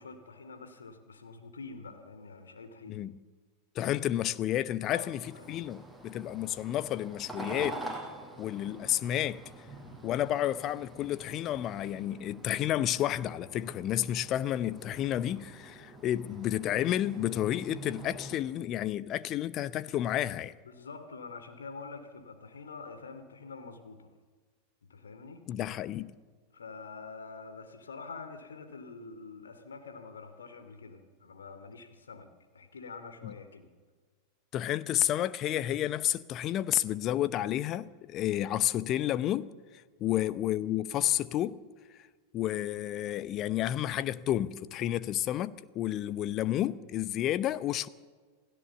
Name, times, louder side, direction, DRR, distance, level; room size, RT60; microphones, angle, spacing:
voice 1, 0.0-3.0 4.9-5.6 20.6-24.1 24.9-25.4 26.5-32.3 32.5-33.7 40.1-40.3, left 4 dB, 70° left, 2.6 m, -46 dB
voice 2, 2.9-3.2 3.7-7.8 8.4-9.4 10.0-20.5 25.5-26.1 33.2-33.3 34.5-39.5 40.0-41.6 42.3-47.9, left 12 dB, 35° left, 0.8 m, -31 dB
sound 1, 5.2-18.4, right 1 dB, 5° left, 5.7 m, -46 dB
28.0 x 17.0 x 7.2 m
figure-of-eight pair, 90°, 0 cm